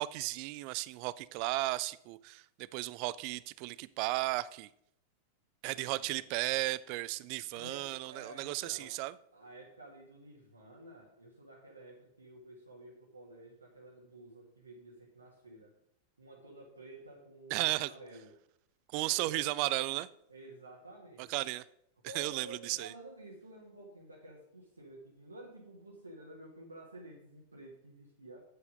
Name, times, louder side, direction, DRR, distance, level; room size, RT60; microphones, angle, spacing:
voice 1, 0.0-2.4 2.7-4.7 5.6-9.1 17.5-17.9 18.9-20.1 21.2-21.6 22.1-22.9, right 19 dB, 45° right, 19 dB, 0.4 m, -34 dB
voice 2, 5.6-6.7 7.5-9.0 9.3-15.7 16.2-18.3 19.0-19.6 20.3-21.4 22.1-28.4, right 2 dB, 80° right, -2 dB, 1.5 m, -52 dB
8.2 x 7.8 x 5.2 m, 0.77 s
figure-of-eight pair, 90°, 0 cm